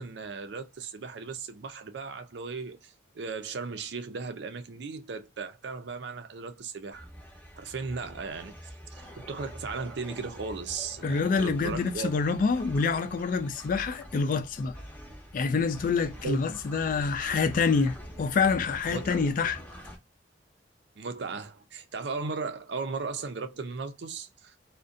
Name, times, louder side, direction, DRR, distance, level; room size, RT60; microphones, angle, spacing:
voice 1, 0.0-7.1 7.6-12.1 16.2-16.6 18.9-19.2 21.0-24.5, right 4 dB, 60° right, 0.5 m, -36 dB
sound 1, 6.9-20.0, equal, 10° left, 0.7 m, -45 dB
voice 2, 11.0-14.7 15.3-19.6, left 5 dB, 45° left, 0.3 m, -27 dB
2.6 x 2.1 x 2.3 m
head